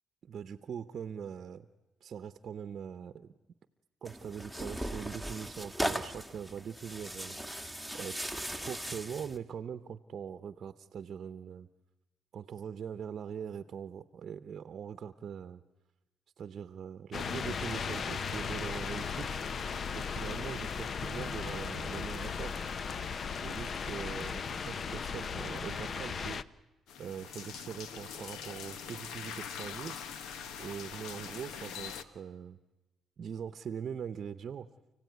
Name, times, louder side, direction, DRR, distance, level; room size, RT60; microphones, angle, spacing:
voice 1, 0.2-1.7 2.0-3.3 4.0-7.4 7.9-8.1 8.7-11.7 12.3-15.6 16.4-19.3 19.9-22.6 23.4-26.4 27.0-30.0 30.6-32.6 33.2-34.7, right 7 dB, 55° right, 11 dB, 0.8 m, -42 dB
Tearing, 4.0-9.4, equal, 5° left, 1.7 m, -38 dB
sound 1, 17.1-26.4, left 6 dB, 50° left, 0.7 m, -36 dB
sound 2, 26.9-32.0, left 7 dB, 85° left, 1.3 m, -43 dB
29.5 x 16.5 x 9.4 m, 1.1 s
cardioid pair, 90°, 0 cm